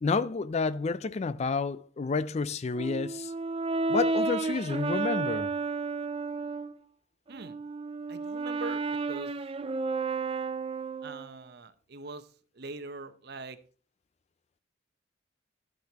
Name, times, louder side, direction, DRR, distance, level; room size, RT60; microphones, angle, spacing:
voice 1, 0.0-3.3 3.9-5.5, left 4 dB, 35° left, 0.4 m, -30 dB
Brass instrument, 2.8-6.7 7.3-11.4, right 3 dB, 30° right, 0.5 m, -32 dB
voice 2, 8.1-8.8 9.1-9.3 11.0-12.3 12.6-13.6, right 3 dB, 60° right, 0.9 m, -42 dB
11.5 x 9.3 x 2.9 m
head